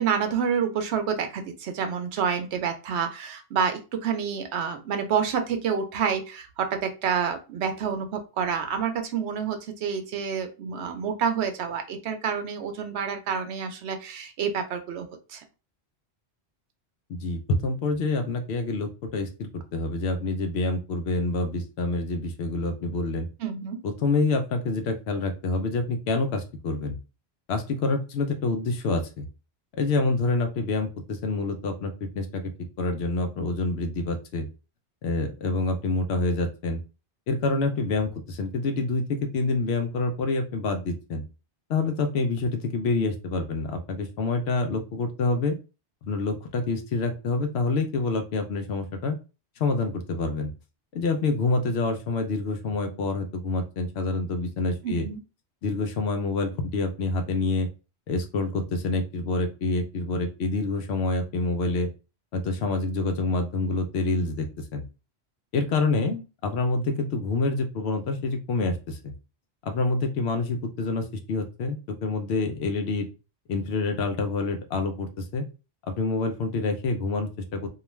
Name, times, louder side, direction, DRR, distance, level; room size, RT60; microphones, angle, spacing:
voice 1, 0.0-15.4 23.4-23.8 54.8-55.2, right 7 dB, 80° right, 6 dB, 0.9 m, -28 dB
voice 2, 17.1-23.3 23.8-27.0 27.5-29.3 29.7-32.4 32.8-34.5 35.0-36.8 37.3-41.2 41.7-45.6 46.0-49.2 49.6-50.5 50.9-55.1 55.6-57.7 58.1-61.9 62.3-64.5 64.7-64.8 65.5-69.1 69.6-73.1 73.5-75.5 75.9-77.7, left 3 dB, 75° left, 6 dB, 0.8 m, -27 dB
2.4 x 2.3 x 3.0 m, 0.31 s
omnidirectional pair, 1.1 m